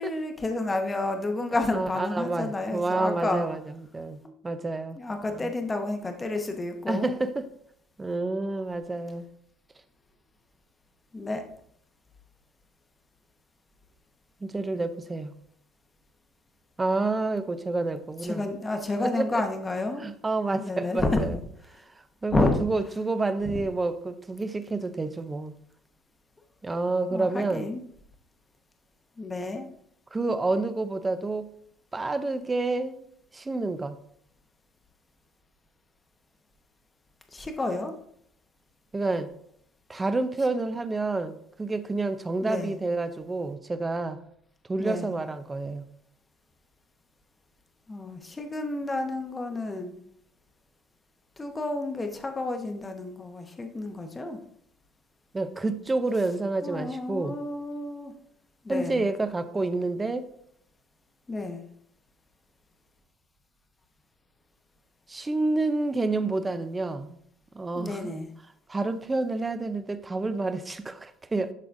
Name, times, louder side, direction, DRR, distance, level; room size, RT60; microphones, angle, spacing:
voice 1, 0.0-3.5 4.2-4.3 4.9-7.2 11.1-11.4 18.2-20.1 20.6-21.3 22.3-22.6 23.5-23.6 27.1-27.8 29.2-29.7 37.3-37.9 42.4-42.7 44.8-45.1 47.9-50.0 51.4-54.4 56.6-58.1 58.6-59.0 61.3-61.6 67.7-68.3, left 2 dB, 15° left, 0.8 m, -30 dB
voice 2, 1.7-5.0 5.4-5.5 6.9-7.5 8.0-9.2 14.4-15.3 16.8-18.5 19.0-19.4 20.0-21.4 22.2-25.6 26.6-27.7 30.1-31.5 31.9-33.0 33.3-34.0 38.9-39.3 39.9-44.2 44.7-45.9 55.3-57.4 58.7-60.3 65.1-67.2 67.5-68.1 68.7-71.5, right 3 dB, 15° right, 0.5 m, -29 dB
11.5 x 3.9 x 2.5 m
cardioid pair, 140°, 0 cm